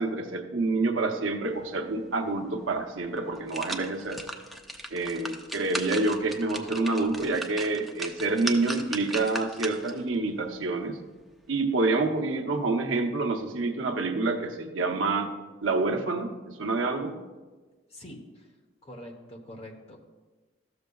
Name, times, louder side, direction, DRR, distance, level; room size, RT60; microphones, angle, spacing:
voice 1, 0.0-4.2 4.9-11.0 11.5-15.3 15.6-17.2, right 3 dB, 80° right, 5 dB, 0.8 m, -27 dB
sound 1, 2.6-2.7 3.2-10.0 10.5-10.6, right 1 dB, ahead, 0.4 m, -38 dB
voice 2, 17.9-18.5 18.8-20.0, equal, 30° left, 3 dB, 0.9 m, -44 dB
13.5 x 6.8 x 2.3 m, 1.3 s
head